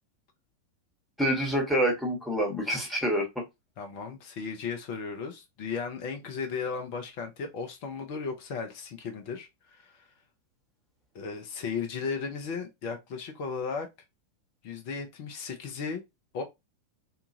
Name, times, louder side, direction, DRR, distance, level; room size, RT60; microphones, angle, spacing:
voice 1, 1.2-3.4, equal, 5° left, 1.2 m, -27 dB
voice 2, 3.8-10.0 11.1-13.9 14.6-16.0 16.3-16.4, left 5 dB, 45° left, 0.6 m, -35 dB
2.8 x 2.4 x 2.6 m
figure-of-eight pair, 90°, 0 cm